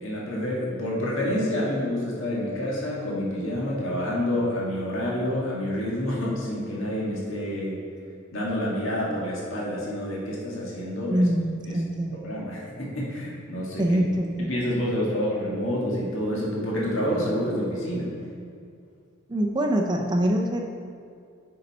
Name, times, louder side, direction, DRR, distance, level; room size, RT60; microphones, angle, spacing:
voice 1, 0.0-7.9 8.3-11.3 11.7-11.8 12.2-13.8 14.4-18.1, equal, 65° left, -5 dB, 1.7 m, -28 dB
voice 2, 11.1-12.2 13.8-14.5 19.3-20.6, right 1 dB, 20° right, 1 dB, 0.4 m, -24 dB
9.4 x 5.4 x 4.1 m, 2.4 s
head